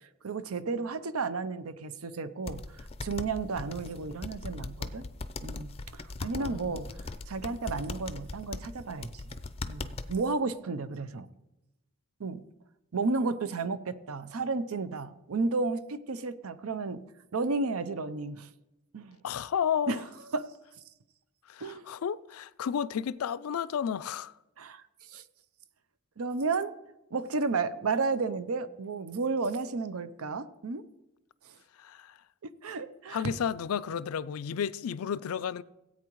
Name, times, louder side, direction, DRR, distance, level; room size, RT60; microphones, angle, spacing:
voice 1, 0.2-5.0 5.4-6.9 7.3-9.4 9.7-11.3 12.2-12.4 12.9-17.0 17.3-18.5 18.9-19.2 19.9-20.0 20.3-20.5 21.6-21.9 24.6-24.8 25.1-25.2 26.2-26.7 27.1-30.8 31.5-31.6 32.4-33.2 33.9-34.0, right 4 dB, 85° right, 0.7 m, -32 dB
sound 1, 2.5-10.2, left 3 dB, 25° left, 0.4 m, -39 dB
voice 2, 6.4-6.8 19.2-20.0 21.5-24.3 31.8-32.2 33.1-35.6, left 8 dB, 90° left, 0.4 m, -32 dB
17.0 x 8.5 x 3.1 m
head